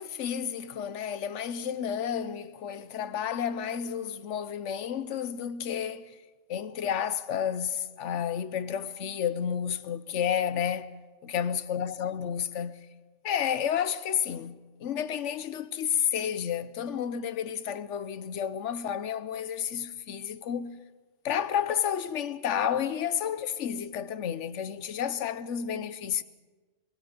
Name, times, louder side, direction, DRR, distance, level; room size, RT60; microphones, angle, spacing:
voice 1, 0.0-6.2 6.5-10.9 11.2-12.8 13.2-20.8 21.2-26.2, left 8 dB, 75° left, 1.1 m, -31 dB
25.0 x 21.5 x 5.2 m
omnidirectional pair, 1.2 m